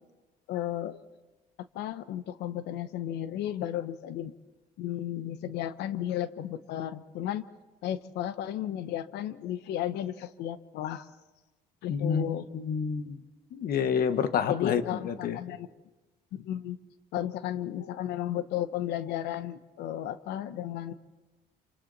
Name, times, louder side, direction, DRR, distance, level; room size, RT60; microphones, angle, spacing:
voice 1, 0.5-1.0 1.7-4.3 4.8-7.4 7.8-11.1 11.8-12.5 14.5-15.7 16.3-16.8 17.1-20.9, left 11 dB, 85° left, 13 dB, 1.0 m, -34 dB
voice 2, 11.9-13.2 13.5-15.4, left 7 dB, 60° left, 10 dB, 1.4 m, -29 dB
27.5 x 26.5 x 4.1 m, 1.2 s
cardioid pair, 110°, 17 cm